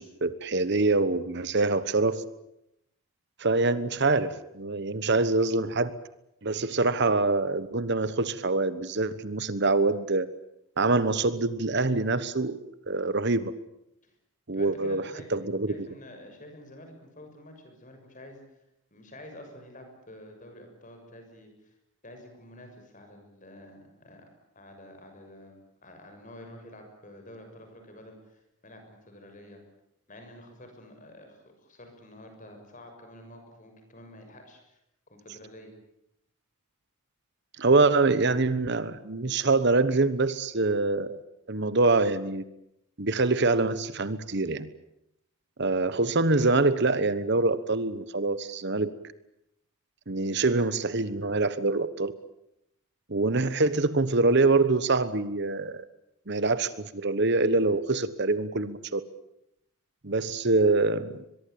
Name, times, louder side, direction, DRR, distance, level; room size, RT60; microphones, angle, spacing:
voice 1, 0.0-2.2 3.4-5.9 6.4-10.3 10.8-13.5 14.5-15.0 15.3-15.7 37.6-41.2 41.5-42.4 43.0-44.7 45.6-48.9 50.1-52.1 53.1-55.8 56.3-59.0 60.0-61.2, right 3 dB, 50° right, 15 dB, 1.2 m, -25 dB
voice 2, 14.5-15.3 15.7-18.4 18.9-21.8 22.0-24.3 24.6-29.6 30.1-34.8 35.1-35.7, left 1 dB, 35° left, 5 dB, 6.9 m, -49 dB
23.5 x 22.5 x 8.7 m, 0.82 s
head